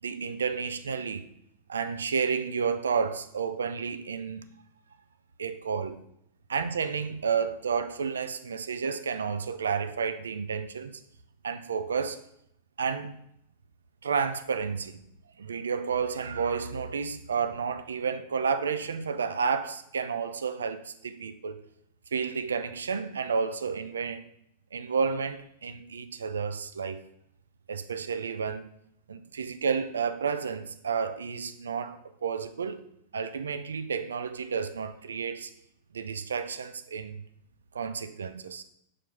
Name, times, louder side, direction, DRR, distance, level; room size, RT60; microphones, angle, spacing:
voice 1, 0.0-1.3 1.7-4.5 5.4-6.0 6.5-11.0 11.4-12.2 12.8-13.2 14.0-15.0 15.4-21.6 22.1-24.3 24.7-27.0 27.7-28.7 29.1-32.8 33.1-35.5 35.9-37.2 37.7-38.6, right 6 dB, 70° right, 0.4 m, -31 dB
4.9 x 4.4 x 5.5 m
figure-of-eight pair, 90°, 0 cm